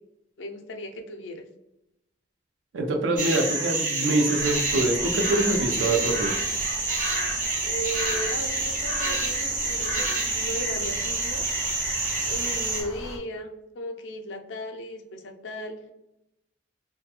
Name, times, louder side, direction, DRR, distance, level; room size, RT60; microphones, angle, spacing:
voice 1, 0.4-1.5 7.6-11.5 12.3-15.9, equal, 80° left, 4 dB, 0.4 m, -36 dB
voice 2, 2.7-6.3, right 2 dB, 90° right, 4 dB, 0.4 m, -24 dB
sound 1, 3.2-12.8, right 2 dB, 45° right, 0.7 m, -27 dB
sound 2, 4.4-13.2, equal, ahead, 0.4 m, -41 dB
2.3 x 2.1 x 2.8 m, 0.88 s
head